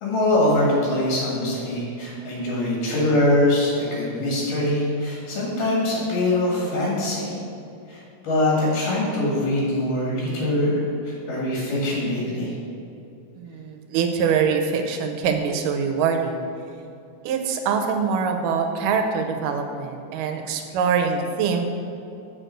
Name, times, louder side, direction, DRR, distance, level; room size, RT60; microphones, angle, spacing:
voice 1, 0.0-7.4 7.9-12.5, left 1 dB, 80° left, -5 dB, 3.5 m, -23 dB
voice 2, 13.4-16.5 17.2-21.6, right 6 dB, 85° right, 4 dB, 2.3 m, -24 dB
7.7 x 4.8 x 6.5 m, 2.6 s
omnidirectional pair, 3.8 m